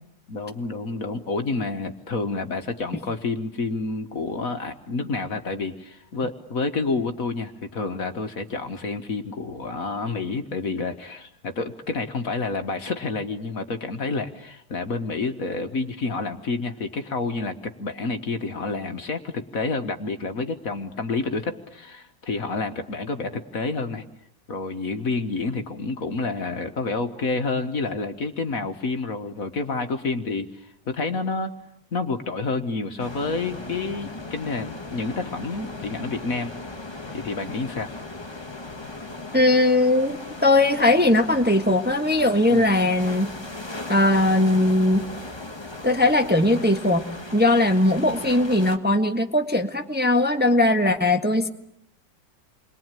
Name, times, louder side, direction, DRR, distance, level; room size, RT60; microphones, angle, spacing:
voice 1, 0.3-24.0 24.5-31.5 31.9-36.5 37.1-38.0 42.5-42.7, left 3 dB, 50° left, 8 dB, 1.8 m, -29 dB
sound 1, 33.0-48.8, left 2 dB, 15° left, 1.6 m, -37 dB
voice 2, 39.3-43.3 43.9-45.0 45.8-47.0 47.3-51.5, left 1 dB, 5° right, 5 dB, 1.4 m, -19 dB
29.0 x 22.0 x 9.1 m, 0.76 s
omnidirectional pair, 1.9 m